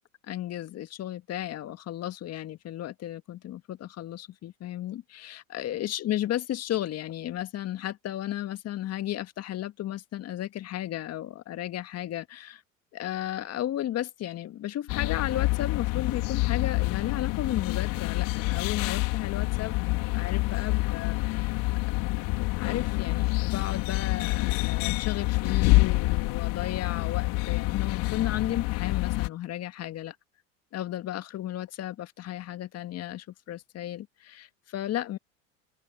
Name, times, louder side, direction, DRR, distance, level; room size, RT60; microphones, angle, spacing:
voice 1, 0.3-12.6 12.9-19.8 20.1-21.6 22.2-30.2 30.7-35.2, left 12 dB, 40° left, 1.9 m, -34 dB
sound 1, 14.9-29.3, left 23 dB, 55° left, 3.3 m, -27 dB
hypercardioid pair, 85°, 39 cm